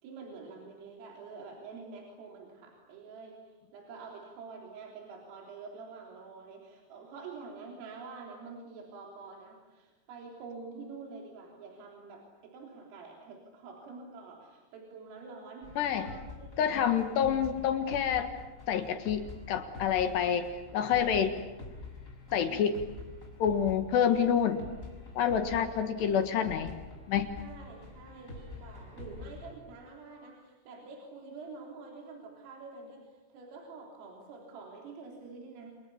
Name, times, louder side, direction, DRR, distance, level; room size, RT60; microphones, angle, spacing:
voice 1, 0.0-16.5 16.7-17.3 22.5-22.8 24.2-24.3 25.3-26.1 27.4-35.8, right 4 dB, 75° right, 0 dB, 6.0 m, -47 dB
sound 1, 15.6-29.5, left 2 dB, 15° left, 5.5 m, -47 dB
voice 2, 15.8-16.1 16.6-18.3 18.7-21.3 22.3-22.7 23.4-24.6 25.2-26.8 27.1-27.3, left 8 dB, 65° left, 8 dB, 3.2 m, -28 dB
29.5 x 28.0 x 7.1 m, 1.2 s
omnidirectional pair, 5.9 m